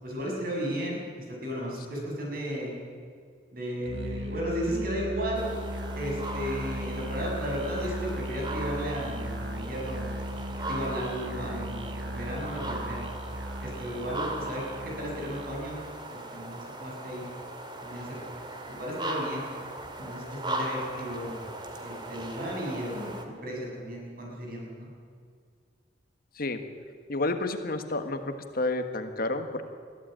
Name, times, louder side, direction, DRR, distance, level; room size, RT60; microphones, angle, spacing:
voice 1, 0.0-1.0 1.4-2.8 3.5-5.5 5.9-10.1 10.5-13.1 13.6-15.8 16.1-17.2 17.8-19.5 20.0-21.4 21.8-24.9, equal, 50° right, -1 dB, 6.8 m, -34 dB
Musical instrument, 3.8-15.6, right 1 dB, 70° right, 1.7 m, -37 dB
sound 1, 5.3-23.3, right 1 dB, 25° right, 2.1 m, -39 dB
voice 2, 27.1-29.6, left 2 dB, 50° left, 7 dB, 1.4 m, -30 dB
22.0 x 14.5 x 8.9 m, 2.1 s
head